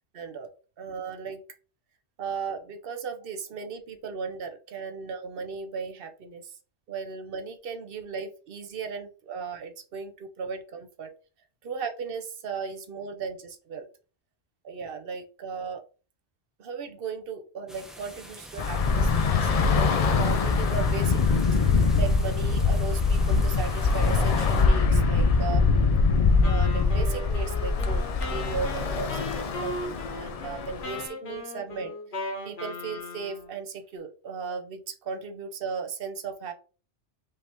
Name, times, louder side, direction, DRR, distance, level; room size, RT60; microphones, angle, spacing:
voice 1, 0.1-0.5 0.8-1.4 2.2-6.5 6.9-11.1 11.6-13.9 14.6-15.8 16.6-21.5 22.0-25.7 26.4-31.9 32.4-36.5, right 5 dB, 60° right, 6 dB, 0.8 m, -36 dB
sound 1, 17.7-24.6, equal, ahead, 0.6 m, -44 dB
Bus / Traffic noise roadway noise, 18.6-31.0, left 4 dB, 55° left, 0.4 m, -23 dB
Wind instrument woodwind instrument, 26.4-33.6, left 2 dB, 70° left, 1.5 m, -38 dB
5.3 x 2.8 x 3.4 m, 0.37 s
omnidirectional pair, 1.1 m